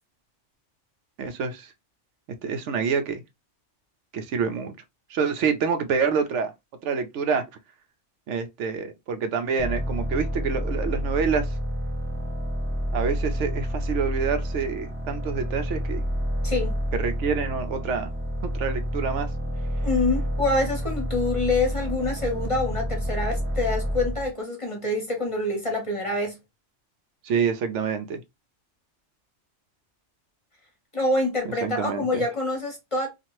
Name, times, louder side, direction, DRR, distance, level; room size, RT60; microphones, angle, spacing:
voice 1, 1.2-1.7 2.4-3.2 4.1-4.7 5.1-6.5 6.8-7.4 8.3-11.5 12.9-16.0 17.0-18.1 18.4-19.3 27.2-28.2 31.6-32.2, right 6 dB, 75° right, 0.9 m, -27 dB
sound 1, 9.6-24.3, equal, 15° right, 0.4 m, -29 dB
voice 2, 16.4-16.8 19.8-26.4 30.9-33.1, left 2 dB, 30° left, 0.9 m, -26 dB
2.8 x 2.5 x 2.9 m
omnidirectional pair, 1.2 m